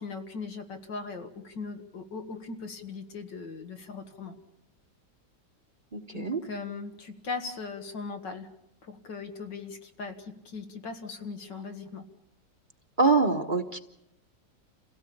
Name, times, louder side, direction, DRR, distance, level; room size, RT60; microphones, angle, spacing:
voice 1, 0.0-4.4 6.1-8.5 8.8-12.0, left 4 dB, 80° left, 6 dB, 2.6 m, -39 dB
voice 2, 5.9-6.4 13.0-13.8, right 3 dB, 30° right, 5 dB, 1.2 m, -24 dB
28.0 x 16.5 x 8.7 m, 0.82 s
omnidirectional pair, 1.9 m